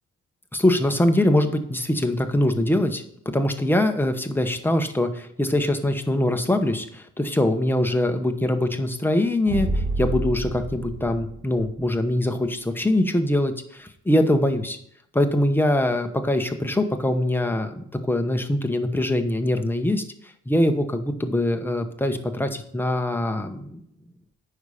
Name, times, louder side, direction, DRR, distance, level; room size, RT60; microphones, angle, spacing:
voice 1, 0.5-14.8 15.1-20.0 20.5-23.8, left 1 dB, 5° left, 6 dB, 1.0 m, -23 dB
sound 1, 9.5-12.1, right 2 dB, 80° right, 3.3 m, -28 dB
9.1 x 5.7 x 5.0 m, 0.71 s
cardioid pair, 90°, 30 cm